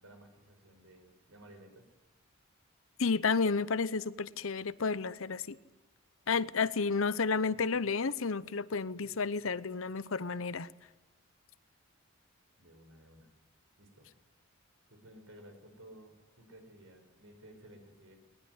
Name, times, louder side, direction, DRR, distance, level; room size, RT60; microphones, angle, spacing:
voice 1, 0.0-1.8 12.6-13.3 13.8-14.1 14.9-18.2, right 1 dB, 70° right, 5.7 m, -55 dB
voice 2, 3.0-5.6 6.3-10.7, left 4 dB, 65° left, 0.8 m, -31 dB
20.0 x 20.0 x 9.7 m
head